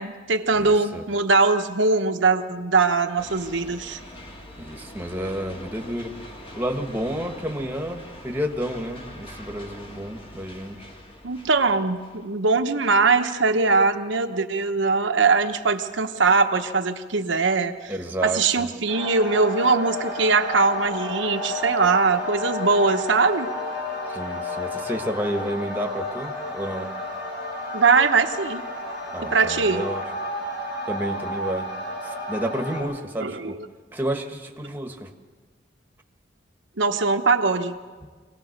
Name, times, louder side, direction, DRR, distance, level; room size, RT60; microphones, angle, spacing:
voice 1, 0.0-4.0 11.2-17.9 18.2-23.5 27.7-28.6 29.2-29.8 33.2-33.6 36.8-37.8, right 4 dB, 80° right, 5 dB, 1.0 m, -21 dB
voice 2, 0.6-1.0 4.6-6.2 6.5-10.8 17.9-18.7 24.1-26.9 29.1-30.0 30.9-31.7 32.0-33.6 33.9-35.1, equal, 10° right, 4 dB, 1.4 m, -30 dB
sound 1, 3.2-12.4, left 1 dB, 30° left, 2.4 m, -43 dB
sound 2, 18.9-32.8, left 1 dB, 65° left, 7.4 m, -31 dB
24.5 x 17.5 x 6.6 m, 1.5 s
head